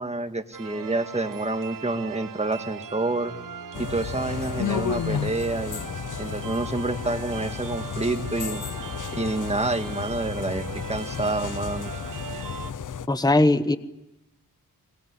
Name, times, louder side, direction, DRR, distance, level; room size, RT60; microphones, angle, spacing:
voice 1, 0.0-3.3 3.8-5.8 6.2-8.6 9.1-11.9, right 2 dB, 20° right, 7 dB, 1.9 m, -28 dB
sound 1, 0.5-12.7, right 7 dB, 60° right, 1.4 m, -39 dB
sound 2, 3.7-13.1, left 8 dB, 60° left, 0.9 m, -32 dB
voice 2, 13.1-13.8, left 2 dB, 10° left, 12 dB, 1.1 m, -19 dB
23.5 x 20.0 x 9.7 m, 0.90 s
cardioid pair, 80°, 36 cm